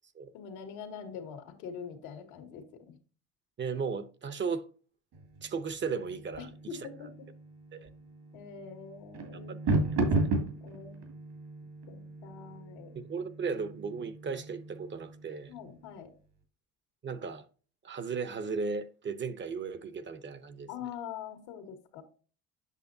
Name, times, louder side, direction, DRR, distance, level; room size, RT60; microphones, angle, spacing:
voice 1, 0.3-2.9 6.4-7.3 8.3-9.5 10.6-11.1 11.9-12.9 15.5-16.1 20.7-22.0, left 7 dB, 90° left, 1.7 m, -44 dB
voice 2, 3.6-4.7 5.4-6.5 6.8-6.9 7.7-7.9 9.3-9.8 12.9-15.5 17.0-17.4 17.8-20.7, right 5 dB, 30° right, 0.7 m, -36 dB
sound 1, 5.1-15.9, right 2 dB, 70° right, 2.4 m, -35 dB
8.3 x 6.2 x 2.7 m
cardioid pair, 105°, 36 cm